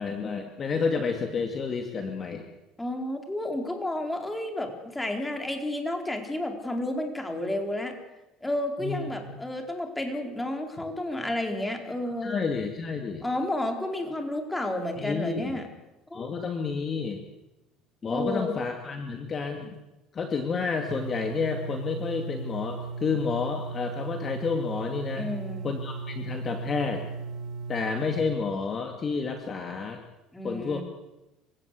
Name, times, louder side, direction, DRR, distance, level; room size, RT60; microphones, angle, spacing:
voice 1, 0.0-2.5 8.8-9.4 12.2-13.2 15.0-15.6 16.1-17.2 18.0-19.8 20.1-25.3 25.6-27.1 27.7-30.0 30.4-30.8, left 5 dB, 35° left, 5 dB, 2.3 m, -30 dB
voice 2, 2.8-7.9 8.4-12.3 13.2-15.7 16.1-16.3 18.0-18.5 25.2-25.7 30.3-30.8, left 1 dB, 10° left, 3 dB, 4.5 m, -31 dB
sound 1, 20.9-28.2, right 4 dB, 55° right, 1.8 m, -36 dB
28.0 x 16.5 x 8.4 m, 1.0 s
cardioid pair, 120°, 0 cm